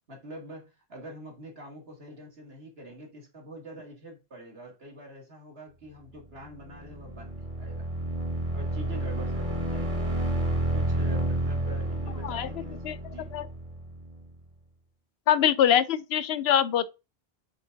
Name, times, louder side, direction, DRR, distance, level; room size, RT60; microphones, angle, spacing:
voice 1, 0.1-7.9 8.5-10.1 10.7-12.8 13.1-13.3, equal, 80° right, 2.1 m, -45 dB
sound 1, 6.5-14.2, right 1 dB, 50° right, 1.6 m, -30 dB
voice 2, 12.2-13.0 13.3-13.5 15.3-16.8, left 10 dB, 80° left, 0.9 m, -24 dB
7.9 x 3.5 x 3.9 m
omnidirectional pair, 1.0 m